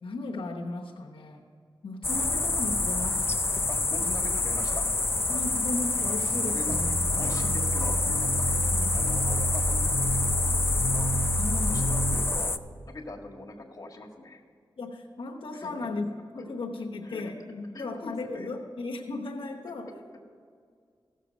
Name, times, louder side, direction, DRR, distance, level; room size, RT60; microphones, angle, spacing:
voice 1, 0.0-1.4 1.8-3.3 4.0-4.2 5.3-7.7 8.7-8.9 11.4-11.8 14.8-19.9, left 2 dB, 85° left, -1 dB, 1.0 m, -36 dB
sound 1, 2.0-12.6, left 3 dB, 30° left, 0.5 m, -27 dB
voice 2, 3.7-4.9 6.5-6.8 7.1-8.6 8.9-11.1 11.7-11.8 12.1-12.6 12.9-14.4 15.5-15.9 17.0-17.3 17.7-18.5, left 2 dB, 45° left, 0 dB, 1.7 m, -42 dB
sound 2, 6.7-12.1, right 1 dB, 80° right, 2.3 m, -30 dB
16.0 x 6.6 x 5.1 m, 2.1 s
cardioid pair, 60°, 9 cm